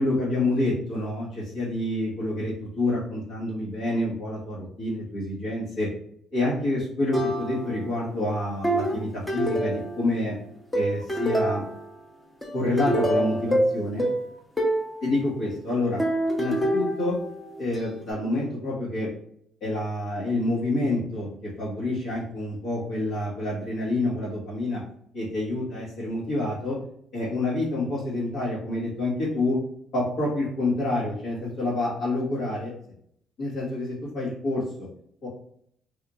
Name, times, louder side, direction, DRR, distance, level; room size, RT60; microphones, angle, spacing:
voice 1, 0.0-5.9 6.3-10.4 10.7-11.6 12.5-14.1 15.0-16.0 16.4-17.2 17.6-19.1 19.6-24.8 25.1-26.8 27.1-29.6 29.9-32.7 33.4-34.9 35.2-35.3, left 2 dB, 75° left, -10 dB, 1.4 m, -28 dB
sound 1, 7.1-7.9 8.6-10.3 10.7-11.9 12.4-14.9 16.0-17.8, right 1 dB, 15° left, 0.8 m, -26 dB
3.4 x 2.8 x 2.4 m, 0.66 s
cardioid pair, 105°, 0 cm